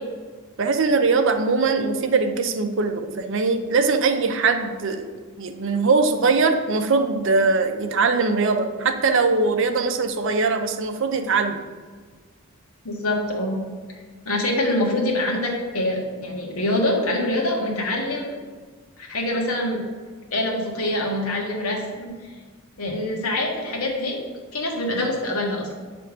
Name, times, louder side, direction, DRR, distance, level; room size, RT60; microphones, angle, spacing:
voice 1, 0.6-5.1 5.4-11.6, right 4 dB, 55° right, 7 dB, 0.6 m, -21 dB
voice 2, 12.8-13.6 14.2-18.4 19.0-19.8 20.3-22.3 22.8-24.2 24.5-25.7, left 1 dB, 75° left, 0 dB, 1.4 m, -25 dB
8.2 x 3.4 x 5.0 m, 1.5 s
head